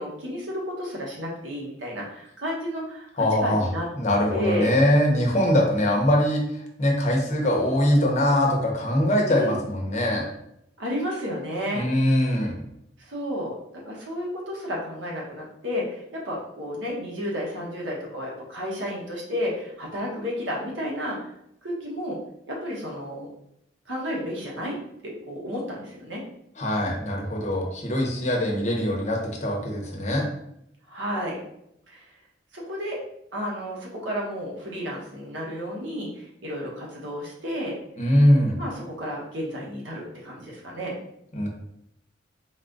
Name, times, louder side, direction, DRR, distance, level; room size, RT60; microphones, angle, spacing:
voice 1, 0.0-3.9 4.3-4.8 9.3-9.6 10.8-11.9 12.2-12.3 13.0-21.3 21.6-22.2 22.5-23.3 23.9-26.2 30.9-31.4 31.9-32.1 32.5-33.0 33.3-37.8 38.6-41.0, equal, 80° right, -2 dB, 1.2 m, -32 dB
voice 2, 3.2-3.7 4.0-6.4 6.8-10.2 11.7-12.6 26.6-30.2 38.0-38.6 41.3-41.5, left 1 dB, 40° left, -1 dB, 0.9 m, -22 dB
4.1 x 2.4 x 3.8 m, 0.75 s
head